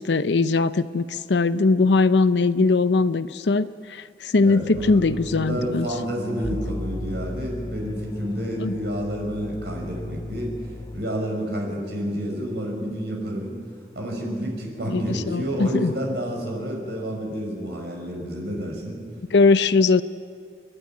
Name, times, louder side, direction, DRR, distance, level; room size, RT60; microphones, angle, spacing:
voice 1, 0.0-5.9 8.6-8.7 14.9-15.9 19.3-20.0, left 3 dB, 80° left, 14 dB, 0.6 m, -20 dB
voice 2, 4.4-10.5 10.9-13.6 14.0-19.0, equal, 70° right, 0 dB, 5.8 m, -29 dB
sound 1, 4.7-11.0, left 1 dB, 20° left, 0.7 m, -35 dB
30.0 x 11.5 x 9.3 m, 2.2 s
head